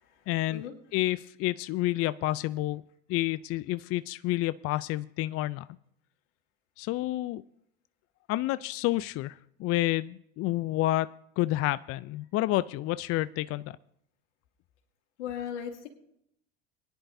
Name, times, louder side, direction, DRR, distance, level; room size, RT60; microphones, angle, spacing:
voice 1, 0.3-0.6 0.9-2.8 3.1-5.7 6.8-7.4 8.3-11.1 11.4-13.8, left 16 dB, 45° left, 16 dB, 0.4 m, -29 dB
voice 2, 15.2-15.9, left 8 dB, 80° left, 2 dB, 2.5 m, -37 dB
21.5 x 10.5 x 2.7 m, 0.73 s
hypercardioid pair, 80°, 35 cm